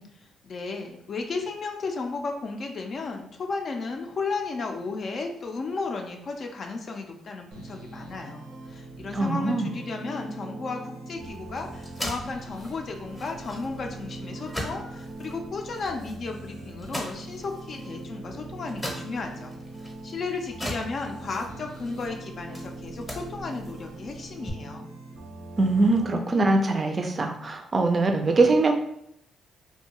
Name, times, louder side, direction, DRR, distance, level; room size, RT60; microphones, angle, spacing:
voice 1, 0.4-19.5 19.8-24.9, left 4 dB, 50° left, 3 dB, 0.4 m, -34 dB
sound 1, 7.5-26.1, right 2 dB, 85° right, 0.5 m, -41 dB
voice 2, 9.1-9.7 25.6-28.7, right 2 dB, 35° right, 5 dB, 0.4 m, -22 dB
sound 2, 11.2-24.5, equal, 10° left, 0.7 m, -41 dB
2.6 x 2.2 x 2.8 m, 0.73 s
cardioid pair, 80°, 0 cm